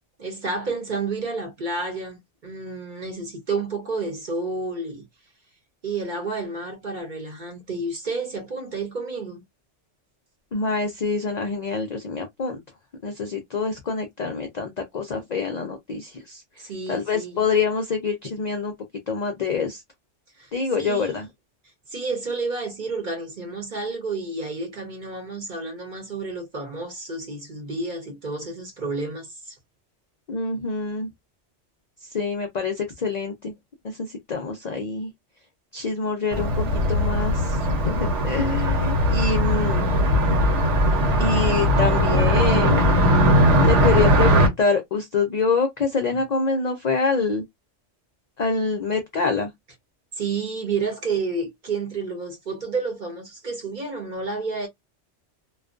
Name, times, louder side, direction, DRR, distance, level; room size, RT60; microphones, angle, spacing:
voice 1, 0.2-5.0 5.8-9.4 16.6-17.4 20.4-20.5 20.8-21.2 21.9-29.5 50.2-54.7, right 3 dB, 45° right, 0.8 m, -30 dB
voice 2, 10.5-12.6 13.0-16.4 16.9-18.7 19.1-19.8 20.5-21.3 30.3-31.1 32.1-33.5 33.8-35.1 35.7-39.9 41.2-42.9 43.6-47.4 48.4-49.5, left 4 dB, 60° left, 0.4 m, -26 dB
Car passing by, 36.3-44.5, equal, 70° right, 1.1 m, -19 dB
2.4 x 2.2 x 2.4 m
omnidirectional pair, 1.3 m